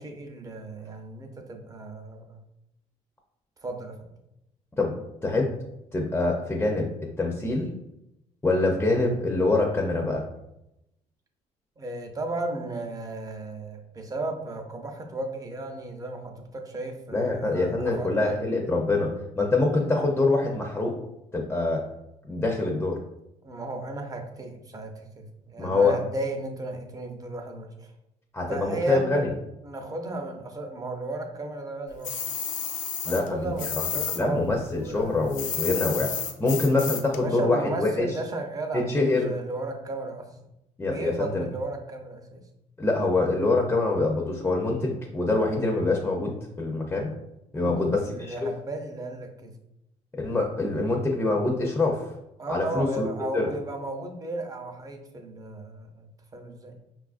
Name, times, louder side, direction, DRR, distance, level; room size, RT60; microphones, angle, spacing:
voice 1, 0.0-2.4 3.6-4.1 11.8-18.4 23.4-27.9 28.5-29.2 29.6-32.1 33.1-35.7 37.1-40.3 40.8-42.4 47.5-49.5 52.4-56.7, right 2 dB, 25° right, 3 dB, 0.6 m, -34 dB
voice 2, 5.2-5.6 5.9-6.9 7.2-7.7 8.4-10.2 17.1-20.9 21.3-21.8 22.3-23.0 25.6-26.0 28.3-29.3 33.1-33.5 34.2-36.1 36.4-38.1 38.7-39.3 40.8-41.4 42.8-47.1 47.5-48.0 48.3-48.4 50.1-52.1 52.5-53.1 53.3-53.5, left 2 dB, 15° left, 0 dB, 0.5 m, -25 dB
sound 1, 32.0-34.2 34.5-37.2, left 7 dB, 65° left, 0.4 m, -31 dB
5.3 x 2.4 x 2.4 m, 0.86 s
cardioid pair, 110°, 14 cm